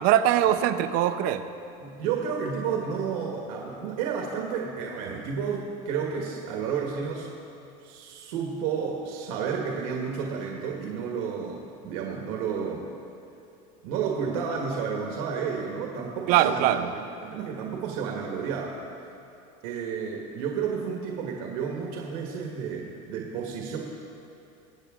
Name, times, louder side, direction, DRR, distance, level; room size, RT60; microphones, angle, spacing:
voice 1, 0.0-1.4 16.3-16.9, right 11 dB, 55° right, 10 dB, 0.7 m, -22 dB
voice 2, 1.8-7.3 7.8-12.9 13.8-18.8 19.6-23.8, right 6 dB, 75° right, 0 dB, 1.7 m, -31 dB
23.0 x 8.3 x 3.8 m, 2.7 s
cardioid pair, 160°, 18 cm